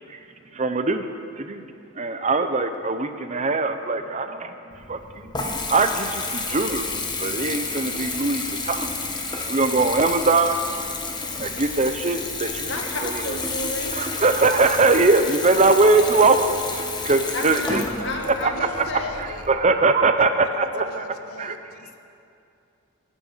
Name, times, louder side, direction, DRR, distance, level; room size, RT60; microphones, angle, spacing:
voice 1, 0.5-1.1 1.4-1.6 2.0-4.5 4.9-5.0 5.7-6.9 7.2-8.9 9.5-10.6 11.4-12.7 13.0-13.1 13.9-16.4 16.7-17.8 18.4-18.9 19.5-21.1 21.4-21.6, right 3 dB, 35° right, 8 dB, 0.7 m, -21 dB
Water tap faucet / Bathtub (filling or washing) / Trickle dribble, 4.7-19.6, left 3 dB, 20° left, 1.2 m, -31 dB
voice 2, 12.6-14.0 17.3-19.1, left 2 dB, 55° left, 2 dB, 1.9 m, -32 dB
voice 3, 17.7-19.4 20.5-22.0, left 3 dB, 85° left, 7 dB, 1.0 m, -39 dB
23.0 x 9.2 x 5.8 m, 2.5 s
head